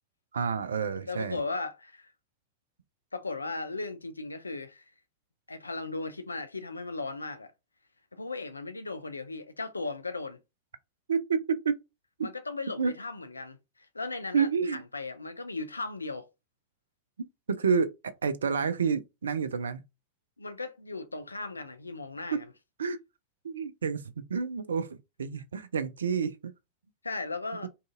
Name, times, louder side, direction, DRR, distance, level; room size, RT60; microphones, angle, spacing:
voice 1, 0.3-1.4 11.1-11.8 12.2-12.3 12.8-12.9 14.3-14.8 17.5-19.8 22.3-22.4 22.8-23.0 23.4-26.5 27.6-27.7, right 6 dB, 70° right, 0.3 m, -29 dB
voice 2, 1.1-2.1 3.1-4.8 5.5-7.5 8.1-10.4 12.2-16.3 20.4-22.4 27.0-27.7, left 3 dB, 80° left, 0.3 m, -37 dB
2.6 x 2.4 x 2.4 m
figure-of-eight pair, 90°, 0 cm